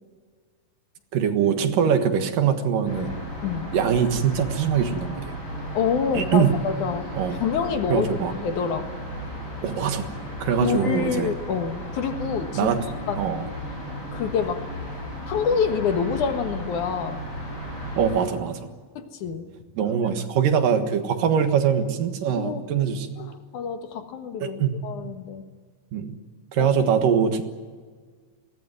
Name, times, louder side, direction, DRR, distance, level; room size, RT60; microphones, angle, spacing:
voice 1, 1.1-3.1 3.7-5.4 6.1-6.6 7.1-7.4 7.9-8.3 9.6-10.1 10.4-11.3 12.5-12.8 13.2-13.5 18.0-18.7 19.8-23.1 24.4-24.8 25.9-26.2 26.5-27.4, right 7 dB, 75° right, 7 dB, 3.2 m, -23 dB
sound 1, 2.8-18.2, equal, 25° left, 8.7 m, -35 dB
voice 2, 3.4-3.8 5.7-7.1 7.4-8.9 10.6-12.7 13.1-13.3 14.1-14.6 15.3-17.2 19.0-19.5 22.3-22.6 23.2-25.4 26.6-26.7, left 6 dB, 65° left, 7 dB, 2.8 m, -27 dB
22.0 x 18.0 x 9.3 m, 1.6 s
omnidirectional pair, 3.9 m